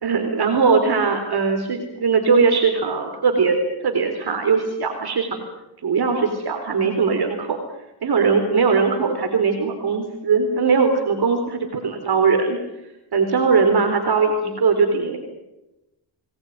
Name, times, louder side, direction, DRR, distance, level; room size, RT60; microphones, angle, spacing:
voice 1, 0.0-3.6 3.8-5.4 5.8-7.6 8.0-12.6 13.1-15.2, right 5 dB, 50° right, 5 dB, 3.9 m, -20 dB
24.0 x 20.0 x 9.4 m, 0.96 s
cardioid pair, 85°, 47 cm